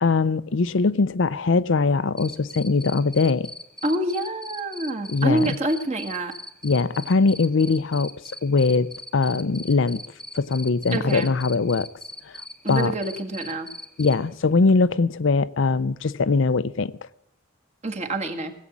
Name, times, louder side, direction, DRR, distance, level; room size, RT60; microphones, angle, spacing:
voice 1, 0.0-3.5 5.1-5.5 6.6-8.1 8.4-10.0 10.3-11.9 12.3-12.4 12.7-12.9 14.0-16.9, left 4 dB, 65° left, 0.6 m, -21 dB
Cricket, 2.2-14.1, left 1 dB, 5° left, 1.0 m, -39 dB
voice 2, 3.8-6.3 10.9-11.3 12.6-13.7 17.8-18.5, right 1 dB, 35° right, 1.8 m, -26 dB
18.0 x 8.3 x 7.3 m
head